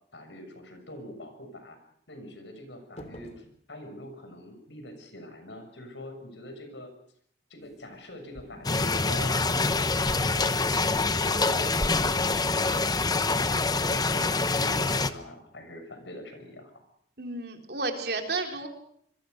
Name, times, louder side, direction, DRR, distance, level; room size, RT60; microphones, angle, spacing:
voice 1, 0.1-1.8 2.1-6.9 7.5-12.7 13.2-16.8, left 1 dB, 80° left, 7 dB, 6.5 m, -44 dB
sound 1, 3.0-3.5 9.1-9.6 11.6-11.9 12.2-12.5, left 1 dB, 40° left, 3.1 m, -46 dB
sound 2, 7.6-8.0 8.3-9.7 10.0-11.5 11.8-12.7, equal, 5° right, 1.6 m, -41 dB
sound 3, 8.6-15.1, left 3 dB, 20° left, 0.9 m, -25 dB
voice 2, 17.2-18.7, right 3 dB, 60° right, 4 dB, 3.8 m, -32 dB
26.5 x 23.0 x 6.7 m, 0.69 s
head